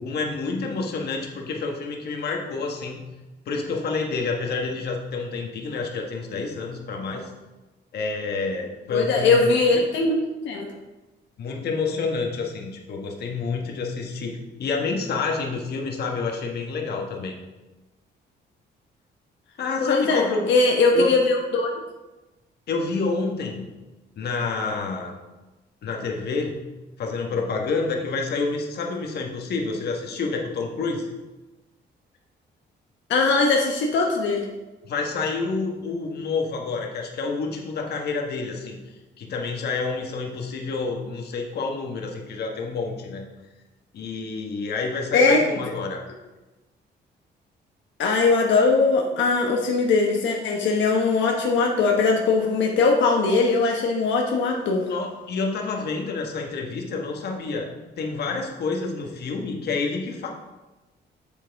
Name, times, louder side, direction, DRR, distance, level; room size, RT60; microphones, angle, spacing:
voice 1, 0.0-3.0 3.5-7.3 7.9-9.5 11.4-17.3 19.6-20.5 20.9-21.1 22.7-23.7 24.2-25.1 25.8-26.6 27.0-31.1 34.8-38.8 39.2-43.2 43.9-46.0 54.9-57.7 58.0-60.3, left 4 dB, 60° left, 1 dB, 1.3 m, -28 dB
voice 2, 8.9-10.2 10.4-10.7 19.8-21.7 33.1-34.4 45.1-45.4 48.0-54.9, left 3 dB, 85° left, 0 dB, 1.1 m, -20 dB
8.4 x 7.5 x 3.5 m, 1.1 s
cardioid pair, 155°, 19 cm